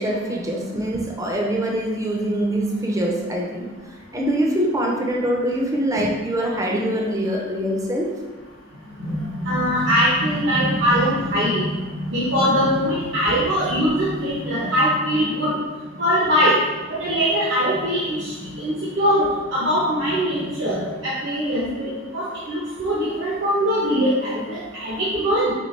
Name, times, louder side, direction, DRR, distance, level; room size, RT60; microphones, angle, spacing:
voice 1, 0.0-3.7 4.1-8.2, right 1 dB, 15° right, 0 dB, 0.5 m, -24 dB
voice 2, 9.4-11.7 12.1-15.5 16.0-16.5 17.0-18.2 18.6-19.2 19.5-25.5, equal, 65° right, -7 dB, 0.9 m, -21 dB
4.5 x 3.3 x 3.1 m, 1.3 s
head